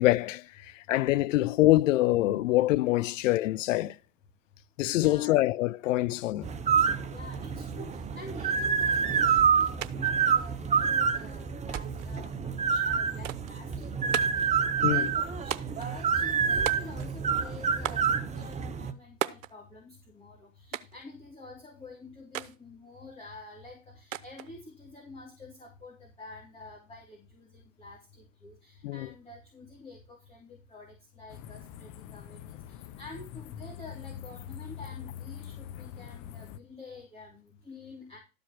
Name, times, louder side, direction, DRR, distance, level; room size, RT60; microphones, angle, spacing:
voice 1, 0.0-4.0 4.8-6.5 14.8-15.1 28.8-29.1, left 16 dB, 70° left, 0.7 m, -25 dB
voice 2, 4.9-5.4 7.1-38.2, left 2 dB, 15° left, 3.5 m, -48 dB
sound 1, 6.4-18.9, right 6 dB, 15° right, 0.8 m, -27 dB
sound 2, 9.8-9.9 10.2-11.0 11.7-12.1 13.2-13.6 14.1-14.5 15.5-15.9 16.7-17.2 17.8-18.1 19.2-19.5 20.7-21.0 22.3-22.6 24.1-24.5, right 11 dB, 75° right, 0.9 m, -35 dB
sound 3, 31.3-36.6, left 9 dB, 45° left, 0.9 m, -43 dB
12.5 x 5.2 x 6.0 m
hypercardioid pair, 100°, 39 cm